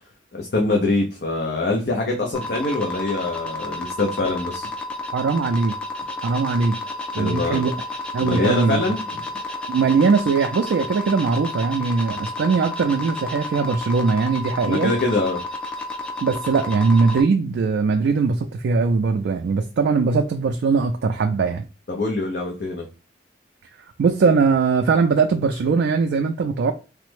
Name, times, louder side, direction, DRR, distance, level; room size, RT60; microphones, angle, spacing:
voice 1, 0.3-4.7 7.2-7.7 8.2-9.0 14.6-15.4 21.9-22.8, left 2 dB, 60° left, 0.5 m, -24 dB
sound 1, 2.3-17.2, left 2 dB, 5° left, 0.3 m, -31 dB
voice 2, 5.1-5.7 6.2-6.8 7.1-7.7 8.1-8.8 9.7-14.9 16.2-21.6 24.0-26.7, right 4 dB, 75° right, 0.3 m, -20 dB
3.2 x 2.0 x 3.1 m
head